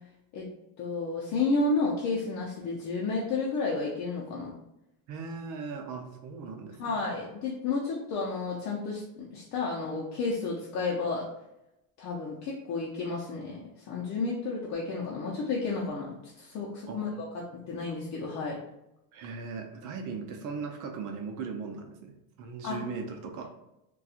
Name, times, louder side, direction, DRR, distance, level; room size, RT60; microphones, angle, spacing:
voice 1, 0.8-4.5 6.8-11.3 12.0-13.6 13.9-16.1 16.4-17.1 17.7-18.6 22.6-22.8, left 3 dB, 45° left, -3 dB, 0.6 m, -31 dB
voice 2, 5.1-7.0 16.9-17.1 19.1-23.5, right 5 dB, 55° right, 4 dB, 0.6 m, -38 dB
4.1 x 2.3 x 2.4 m, 0.89 s
cardioid pair, 155°, 37 cm